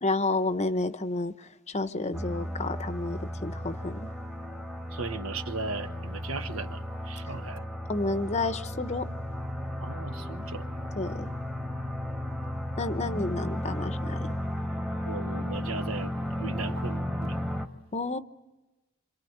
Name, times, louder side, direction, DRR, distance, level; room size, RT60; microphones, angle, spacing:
voice 1, 0.0-4.1 7.9-9.1 10.9-11.3 12.8-14.3 17.9-18.2, left 2 dB, 30° left, 0.8 m, -30 dB
sound 1, 2.1-17.7, left 1 dB, 5° right, 1.4 m, -34 dB
voice 2, 4.9-7.6 9.8-10.7 15.0-16.1 16.4-17.4, right 3 dB, 70° right, 1.4 m, -37 dB
28.0 x 26.5 x 8.0 m
head